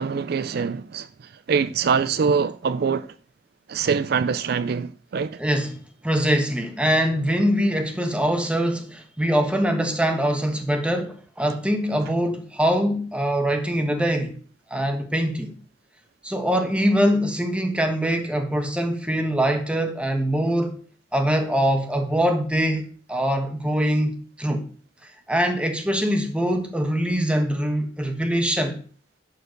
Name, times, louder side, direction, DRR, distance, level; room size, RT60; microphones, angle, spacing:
voice 1, 0.0-3.1 3.7-5.4, right 6 dB, 55° right, 0.4 m, -24 dB
voice 2, 5.4-5.8 6.0-14.4 14.7-15.5 16.2-20.8 21.1-24.6 25.3-28.8, equal, 5° right, 1.4 m, -23 dB
11.5 x 4.5 x 6.5 m
head